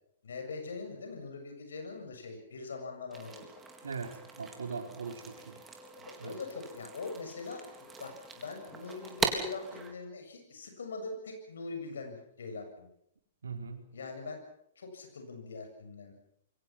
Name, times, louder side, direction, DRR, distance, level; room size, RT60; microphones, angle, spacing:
voice 1, 0.2-3.5 5.8-12.9 13.9-14.4 14.8-16.1, left 4 dB, 65° left, 5 dB, 7.5 m, -42 dB
sound 1, 3.1-9.9, right 4 dB, 15° right, 3.8 m, -40 dB
voice 2, 3.8-5.6 6.2-6.4 13.4-13.8, right 5 dB, 70° right, 4 dB, 4.3 m, -40 dB
28.5 x 23.0 x 6.1 m, 0.74 s
figure-of-eight pair, 110°, 0 cm